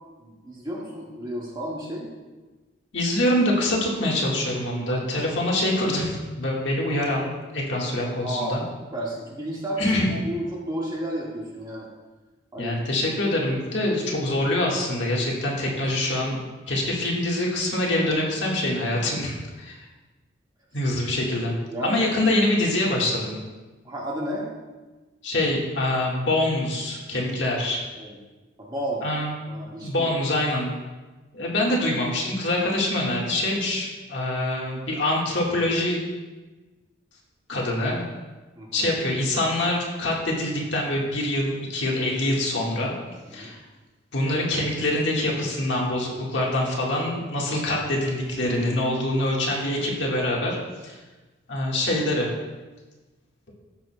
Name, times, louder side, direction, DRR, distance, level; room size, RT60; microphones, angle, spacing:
voice 1, 0.2-2.1 8.2-8.6 8.9-11.9 12.5-13.3 21.7-22.0 23.8-24.5 28.0-28.2 28.6-29.0 29.5-30.1 38.5-38.9 43.3-43.5, right 1 dB, 20° right, -4 dB, 1.7 m, -32 dB
voice 2, 2.9-7.3 7.5-8.6 9.8-10.1 12.6-19.8 20.7-21.5 21.8-23.4 25.2-27.9 29.0-29.3 29.8-30.7 31.3-36.1 37.5-38.0 38.7-43.0 43.3-43.6 44.1-50.6 50.8-51.0 51.5-52.3, left 1 dB, 65° left, -3 dB, 1.6 m, -25 dB
14.5 x 6.1 x 2.2 m, 1.2 s
head